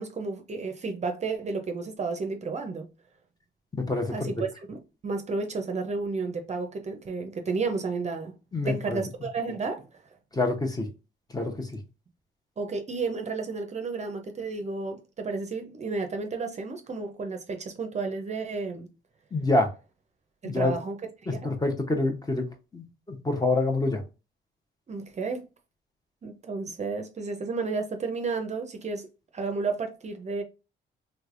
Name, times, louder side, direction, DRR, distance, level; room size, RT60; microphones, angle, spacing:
voice 1, 0.0-2.9 4.1-8.4 8.6-9.9 12.6-18.9 20.4-21.0 21.2-21.5 24.9-25.5 26.2-29.1 29.3-30.4, right 4 dB, 35° right, 0.6 m, -32 dB
voice 2, 3.7-4.3 8.5-9.0 10.3-10.9 11.3-11.7 19.3-19.7 20.4-20.7 21.3-22.4 22.7-24.0, left 2 dB, 20° left, 0.8 m, -26 dB
3.2 x 3.2 x 2.4 m
cardioid pair, 90°, 20 cm